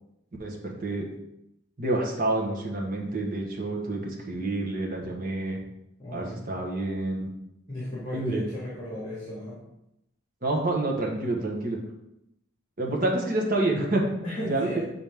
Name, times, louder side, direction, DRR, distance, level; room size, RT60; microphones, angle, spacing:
voice 1, 0.4-1.1 1.8-5.6 6.1-7.3 8.1-8.4 10.4-11.8 12.8-14.1 14.5-14.8, right 2 dB, 40° right, 0 dB, 1.1 m, -28 dB
voice 2, 6.0-6.5 7.7-9.6 14.2-14.8, left 1 dB, 25° left, -7 dB, 1.8 m, -35 dB
7.4 x 4.0 x 3.5 m, 0.86 s
head